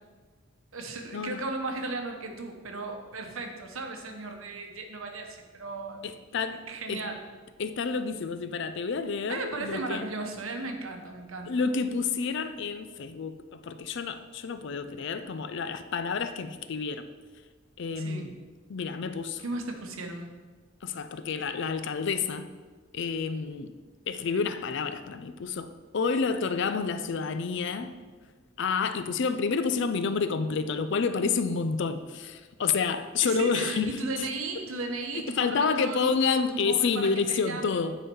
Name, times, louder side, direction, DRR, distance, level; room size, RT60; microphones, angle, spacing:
voice 1, 0.7-6.0 6.5-7.2 9.3-11.7 18.0-18.3 19.4-20.3 33.2-37.8, right 3 dB, 80° right, 4 dB, 1.0 m, -36 dB
voice 2, 6.3-6.6 6.9-7.0 7.6-10.1 11.5-17.0 17.8-18.3 18.7-19.4 20.8-22.5 22.9-23.7 24.1-27.9 28.6-33.9 35.3-38.0, left 5 dB, 60° left, 11 dB, 0.4 m, -29 dB
9.2 x 4.0 x 4.5 m, 1.4 s
head